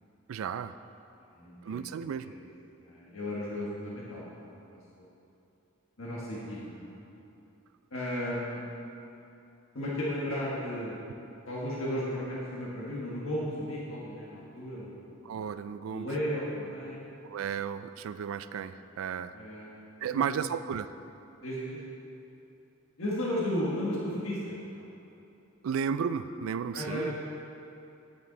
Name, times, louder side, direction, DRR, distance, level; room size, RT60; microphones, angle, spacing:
voice 1, 0.3-0.8 1.6-2.3 15.2-16.1 17.2-19.4 20.0-20.9 25.6-27.1, right 7 dB, 75° right, 13 dB, 0.3 m, -33 dB
voice 2, 1.3-1.9 2.8-4.8 6.0-7.0 7.9-8.6 9.7-11.0 11.4-15.1 15.9-17.0 19.3-19.7 20.1-20.2 21.4-21.8 23.0-24.8 26.7-27.2, equal, 70° left, -6 dB, 1.5 m, -34 dB
8.8 x 8.6 x 3.9 m, 2.7 s
head